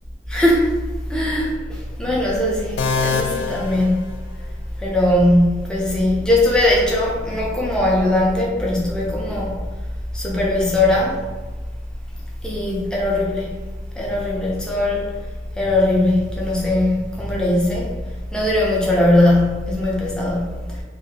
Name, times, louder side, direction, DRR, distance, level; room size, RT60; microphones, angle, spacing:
voice 1, 0.3-0.7 1.1-4.0 4.8-9.6 10.1-11.3 12.4-13.5 14.0-15.1 15.5-18.0 18.3-20.8, left 1 dB, 5° left, -4 dB, 0.5 m, -20 dB
sound 1, 2.8-4.7, left 5 dB, 90° left, 0.3 m, -25 dB
2.7 x 2.5 x 2.7 m, 1.3 s
head